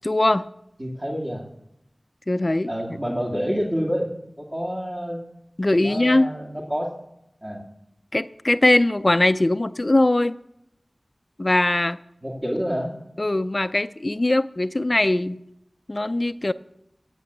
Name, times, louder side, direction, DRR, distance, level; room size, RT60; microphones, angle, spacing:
voice 1, 0.0-0.5 2.3-2.7 5.6-6.3 8.1-10.4 11.4-12.0 13.2-15.4 15.9-16.5, left 2 dB, 40° left, 0.4 m, -21 dB
voice 2, 0.8-1.4 2.7-4.1 4.4-5.2 5.8-6.9 7.4-7.6 12.2-13.0, equal, 30° right, 2.2 m, -28 dB
15.0 x 6.8 x 8.1 m
wide cardioid pair, 60°, 0 cm